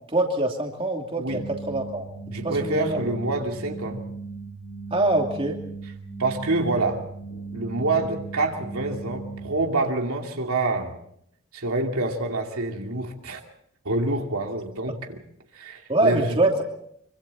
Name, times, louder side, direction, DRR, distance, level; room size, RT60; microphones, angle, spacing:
voice 1, 0.1-1.4 1.7-2.0 2.4-3.0 4.9-5.6 15.9-16.6, right 2 dB, 25° right, 1 dB, 2.7 m, -24 dB
sound 1, 1.3-9.6, right 4 dB, 80° left, 5.5 m, -37 dB
voice 2, 2.3-4.0 6.2-7.0 7.5-10.9 11.5-13.4 13.8-15.2 15.5-16.4, right 2 dB, 80° right, 2 dB, 2.6 m, -26 dB
25.5 x 24.5 x 4.2 m, 0.71 s
head